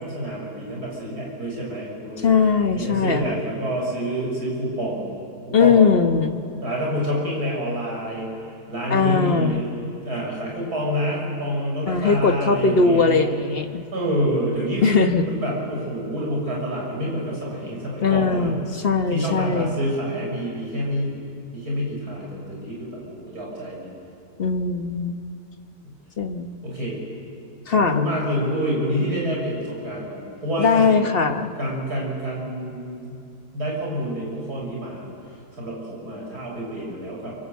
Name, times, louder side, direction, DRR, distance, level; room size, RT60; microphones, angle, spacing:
voice 1, 0.0-2.3 2.7-5.1 5.5-5.9 6.6-8.3 8.7-9.7 10.0-13.2 13.9-18.5 19.1-21.2 21.5-23.9 25.8-25.9 26.6-27.0 27.7-31.2 31.6-33.2 33.5-35.1 35.6-37.4, equal, 65° right, -2 dB, 7.2 m, -27 dB
voice 2, 2.2-3.4 5.5-6.3 8.9-9.7 11.9-13.8 14.8-15.2 18.0-19.8 24.4-25.2 26.2-26.5 27.7-28.1 30.6-31.5, left 5 dB, 40° left, 6 dB, 1.3 m, -20 dB
26.5 x 22.5 x 8.3 m, 2.5 s
omnidirectional pair, 1.8 m